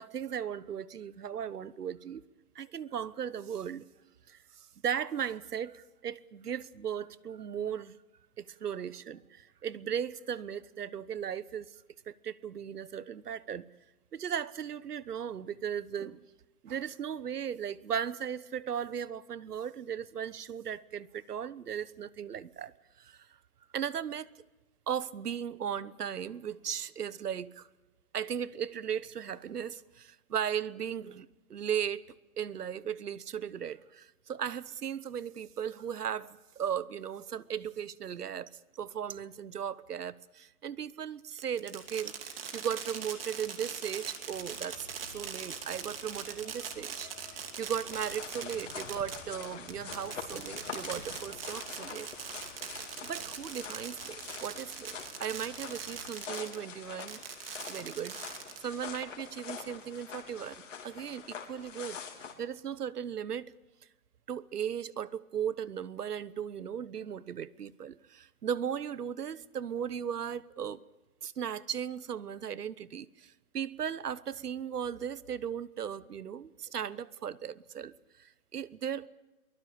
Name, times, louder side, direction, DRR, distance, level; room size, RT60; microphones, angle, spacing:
voice 1, 0.0-2.2 2.5-3.8 4.3-4.4 4.8-8.0 8.4-11.8 12.1-13.7 14.1-16.2 16.6-23.3 23.7-24.3 24.9-27.7 28.1-32.0 32.4-52.1 53.0-57.2 57.7-58.2 58.6-62.0 62.4-63.5 64.3-70.8 71.2-79.1, right 8 dB, 90° right, 1.1 m, -37 dB
Fireworks, 41.4-56.6 57.0-58.8, right 6 dB, 40° right, 2.8 m, -41 dB
sound 1, 44.3-56.1, left 4 dB, 20° left, 3.1 m, -57 dB
sound 2, 47.9-62.3, left 6 dB, 55° left, 3.6 m, -45 dB
23.5 x 20.5 x 8.7 m
hypercardioid pair, 175°, 45 cm